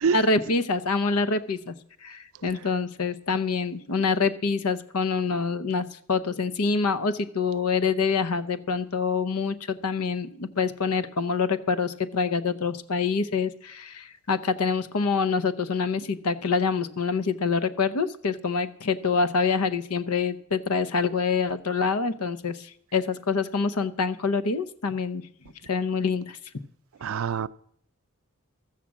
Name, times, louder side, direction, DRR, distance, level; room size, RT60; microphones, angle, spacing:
voice 1, 0.1-1.7 2.0-25.2 25.7-26.4, left 4 dB, 90° left, 14 dB, 0.8 m, -26 dB
voice 2, 27.0-27.5, right 6 dB, 70° right, 16 dB, 0.4 m, -25 dB
13.5 x 7.4 x 7.3 m, 0.65 s
head